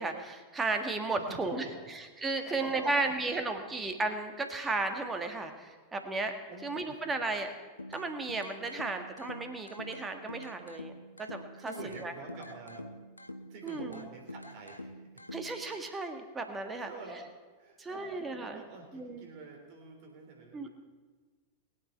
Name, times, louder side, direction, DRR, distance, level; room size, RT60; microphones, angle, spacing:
voice 1, 0.0-1.7 2.2-6.3 6.6-7.5 7.9-10.9 11.2-11.7 12.0-12.1 13.6-14.0 15.3-16.9 17.8-18.6 18.9-19.3 20.5-20.7, right 3 dB, 15° right, 5 dB, 1.6 m, -34 dB
voice 2, 1.2-1.9 2.4-3.4 6.5-7.0 11.6-12.9 13.5-15.2 16.6-17.3 17.6-20.7, right 3 dB, 45° right, 2 dB, 3.4 m, -47 dB
sound 1, 7.8-15.8, left 1 dB, 85° left, 0.7 m, -47 dB
21.0 x 9.1 x 4.5 m, 1.4 s
figure-of-eight pair, 90°, 0 cm